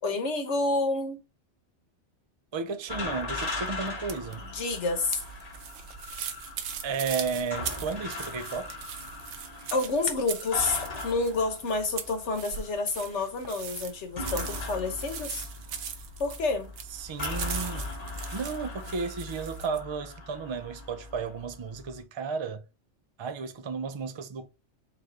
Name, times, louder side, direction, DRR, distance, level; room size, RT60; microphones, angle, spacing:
voice 1, 0.0-1.2 4.5-5.2 9.7-15.5 16.2-16.7, left 3 dB, 75° left, 1.3 m, -29 dB
voice 2, 2.5-4.4 6.8-8.8 16.9-17.9 18.3-22.7 23.2-24.5, right 5 dB, 45° right, 0.3 m, -33 dB
sound 1, 2.9-21.9, left 3 dB, 35° left, 0.9 m, -39 dB
sound 2, 3.1-19.8, right 8 dB, 80° right, 1.0 m, -41 dB
3.3 x 3.3 x 3.8 m
omnidirectional pair, 1.2 m